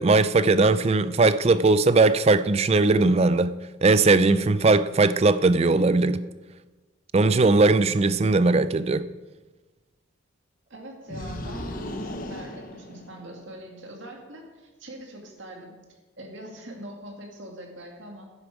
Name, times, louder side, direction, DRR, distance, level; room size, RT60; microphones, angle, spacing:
voice 1, 0.0-3.5 3.8-6.3 7.1-9.0, right 3 dB, 30° right, 0.4 m, -19 dB
voice 2, 10.7-15.8 16.2-18.3, right 1 dB, 65° right, 2.2 m, -42 dB
sound 1, 11.1-13.6, left 1 dB, 45° left, 0.9 m, -36 dB
10.5 x 10.0 x 4.8 m
head